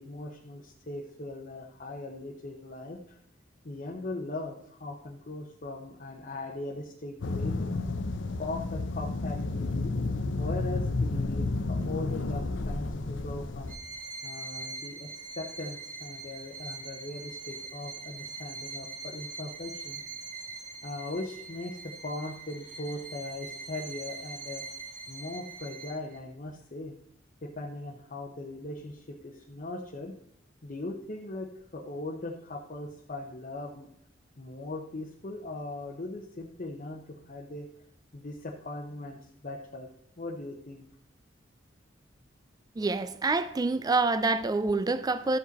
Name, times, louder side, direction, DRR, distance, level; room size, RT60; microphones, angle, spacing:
voice 1, 0.0-3.2 3.6-7.7 8.4-9.9 10.4-13.8 14.2-20.0 20.8-24.6 25.1-26.9 27.4-30.1 30.6-33.9 34.4-37.7 38.1-39.9 40.2-40.8, left 2 dB, 45° left, 0.9 m, -39 dB
sound 1, 7.2-13.8, left 2 dB, 75° left, 0.7 m, -31 dB
Bowed string instrument, 13.7-26.2, right 4 dB, 45° right, 1.4 m, -42 dB
voice 2, 42.8-45.4, right 3 dB, 20° right, 0.4 m, -27 dB
13.5 x 5.0 x 4.0 m
head